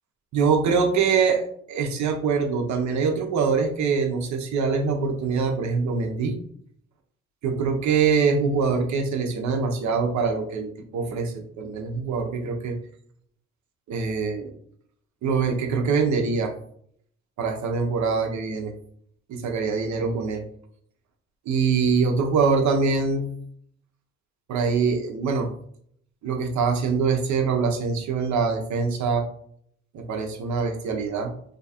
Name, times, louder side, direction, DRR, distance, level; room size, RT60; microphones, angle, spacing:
voice 1, 0.3-1.4 1.7-6.3 7.4-12.8 13.9-14.5 15.2-16.5 17.4-18.7 19.3-20.4 21.5-23.3 24.5-25.5 26.2-29.2 29.9-31.3, right 5 dB, 70° right, 3 dB, 0.8 m, -24 dB
2.9 x 2.4 x 4.2 m, 0.65 s
cardioid pair, 90°, 30 cm